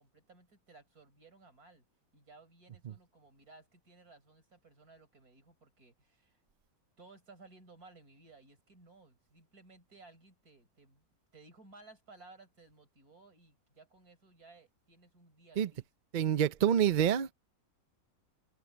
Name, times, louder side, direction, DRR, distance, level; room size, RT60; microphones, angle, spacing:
voice 1, 0.0-1.9 2.1-6.4 7.0-11.1 11.3-15.9, right 3 dB, 85° right, 5.9 m, -59 dB
voice 2, 16.1-17.3, right 9 dB, 55° right, 0.5 m, -27 dB
omnidirectional pair, 1.5 m